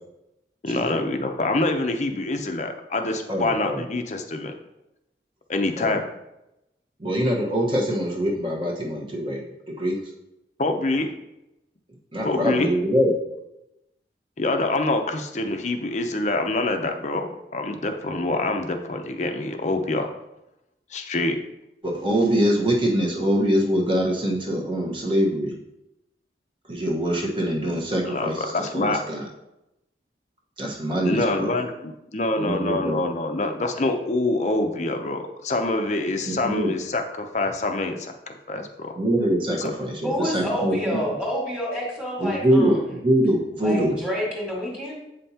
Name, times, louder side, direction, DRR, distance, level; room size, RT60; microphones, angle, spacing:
voice 1, 0.6-4.5 5.5-6.1 10.6-11.1 12.2-12.7 14.4-20.1 20.9-21.4 28.1-29.0 31.0-39.0 39.6-39.7, left 2 dB, 40° left, 5 dB, 0.6 m, -26 dB
voice 2, 3.3-3.8 5.8-6.0 7.0-9.4 9.8-10.0 12.1-13.1 21.8-25.5 26.7-29.2 30.6-31.5 32.4-33.0 36.2-36.7 38.5-38.6 39.0-41.0 42.2-43.9, equal, 30° right, -2 dB, 1.2 m, -24 dB
voice 3, 40.0-43.0 43.6-45.0, equal, 5° right, -4 dB, 1.9 m, -28 dB
8.1 x 5.5 x 2.8 m, 0.89 s
head